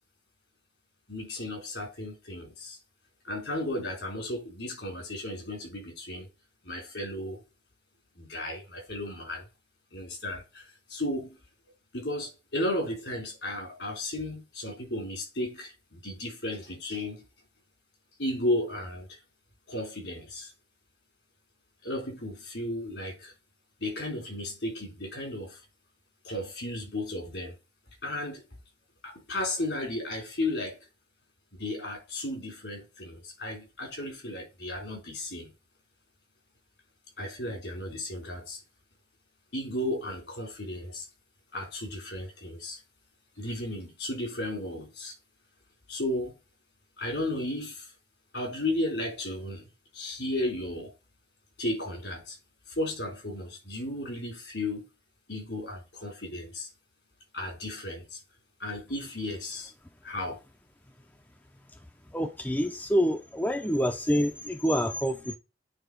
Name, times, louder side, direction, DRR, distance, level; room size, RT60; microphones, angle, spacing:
voice 1, 1.1-2.8 3.2-6.3 6.6-7.4 8.2-9.4 9.9-11.4 11.9-17.2 18.2-19.2 19.7-20.5 21.8-23.3 23.8-25.6 26.2-27.6 28.0-28.4 29.0-30.8 31.5-35.5 37.2-38.6 39.5-41.1 41.5-42.8 43.4-45.1 45.9-46.3 47.0-47.9 48.3-50.9 51.6-52.4 52.7-54.8 55.3-56.7 57.3-58.2 58.6-59.7 60.0-60.4, left 1 dB, 80° left, 3.7 m, -34 dB
voice 2, 62.1-65.4, equal, 10° left, 0.7 m, -27 dB
9.0 x 3.8 x 5.3 m
head